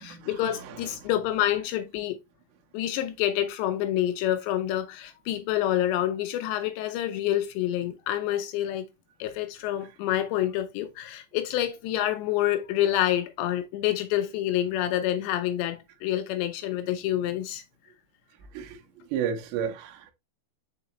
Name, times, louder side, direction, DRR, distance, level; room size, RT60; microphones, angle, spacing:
voice 1, 0.0-2.2 2.7-8.8 9.2-17.6, left 12 dB, 80° left, 2.7 m, -27 dB
voice 2, 19.1-20.1, right 8 dB, 75° right, 3.1 m, -32 dB
6.8 x 4.6 x 3.0 m
omnidirectional pair, 5.4 m